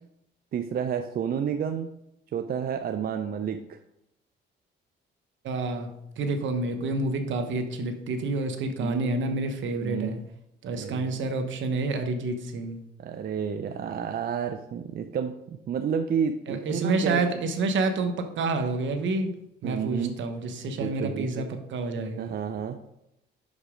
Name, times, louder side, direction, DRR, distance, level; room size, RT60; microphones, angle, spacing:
voice 1, 0.5-1.9 2.3-3.8 8.8-9.0 9.8-10.1 10.7-11.1 13.0-17.2 19.6-20.2 20.8-21.4 22.2-22.8, right 7 dB, 50° right, 7 dB, 0.5 m, -30 dB
voice 2, 5.4-5.9 6.2-10.2 10.6-12.8 16.5-19.4 19.6-22.3, right 3 dB, 70° right, 6 dB, 1.0 m, -28 dB
6.0 x 5.3 x 5.0 m, 0.83 s
cardioid pair, 90°, 20 cm